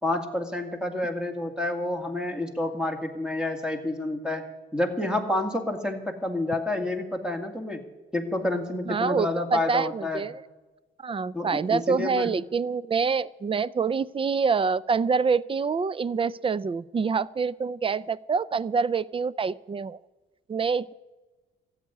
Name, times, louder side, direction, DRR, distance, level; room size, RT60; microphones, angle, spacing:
voice 1, 0.0-4.4 4.7-7.8 8.1-10.2 11.3-12.3, left 2 dB, 5° right, 4 dB, 2.1 m, -29 dB
voice 2, 8.9-10.4 11.0-20.0 20.5-20.9, right 5 dB, 25° right, 21 dB, 0.4 m, -26 dB
14.0 x 8.1 x 9.6 m, 1.2 s
cardioid pair, 90°, 20 cm